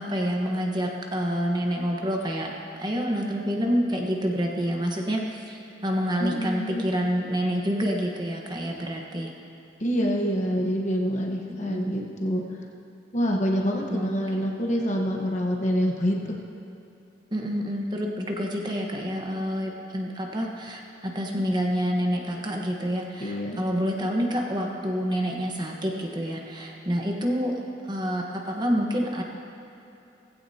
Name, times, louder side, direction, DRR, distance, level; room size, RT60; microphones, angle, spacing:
voice 1, 0.0-2.5 2.8-9.3 11.6-12.0 13.9-14.5 17.3-27.5 27.8-29.2, equal, 25° right, 0 dB, 1.2 m, -28 dB
voice 2, 6.2-6.9 9.8-12.4 13.1-16.4 23.2-23.6, equal, 40° left, 0 dB, 1.2 m, -26 dB
18.0 x 15.5 x 2.9 m, 2.9 s
head